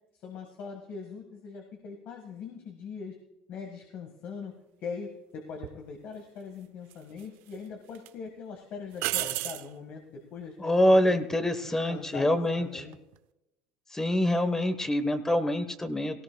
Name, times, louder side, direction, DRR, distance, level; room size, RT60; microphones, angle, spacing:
voice 1, 0.1-3.2 3.5-4.5 4.8-11.2 11.6-12.3 12.6-13.0, left 5 dB, 55° left, 3 dB, 1.7 m, -41 dB
sound 1, 5.6-5.8 6.9-7.6 7.9-8.1 9.0-9.7 12.8-13.2, right 17 dB, 70° right, 0.5 m, -32 dB
voice 2, 10.6-12.8 13.9-16.2, left 1 dB, 10° left, 10 dB, 1.2 m, -25 dB
17.5 x 17.0 x 2.3 m, 0.94 s
supercardioid pair, 90°, 4 cm